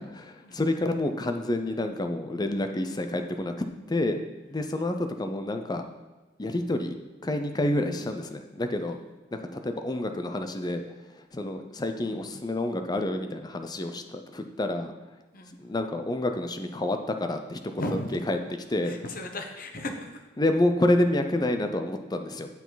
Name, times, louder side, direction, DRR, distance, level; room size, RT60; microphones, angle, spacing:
voice 1, 0.1-4.2 4.5-5.9 6.4-7.0 7.2-9.0 9.3-14.9 15.6-18.4 18.7-19.0 20.4-22.5, left 1 dB, 20° left, 6 dB, 0.6 m, -28 dB
voice 2, 17.8-18.1 18.8-20.2, left 1 dB, 50° left, 5 dB, 1.0 m, -35 dB
8.2 x 6.8 x 4.0 m, 1.2 s
head